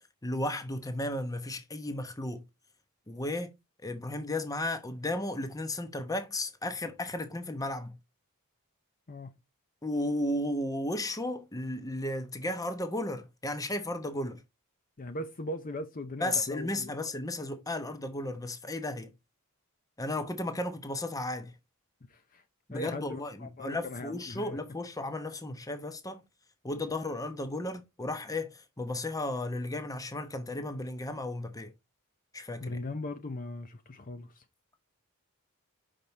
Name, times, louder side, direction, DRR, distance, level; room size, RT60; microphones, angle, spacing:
voice 1, 0.2-2.4 3.1-3.6 3.8-8.0 9.8-14.4 16.2-19.1 20.0-21.5 22.7-26.2 26.6-31.7 32.3-32.8, left 1 dB, 15° left, 0.9 m, -34 dB
voice 2, 15.0-17.0 22.1-22.4 22.7-24.6 32.6-34.4, left 1 dB, 40° left, 0.7 m, -39 dB
5.9 x 5.2 x 4.0 m
head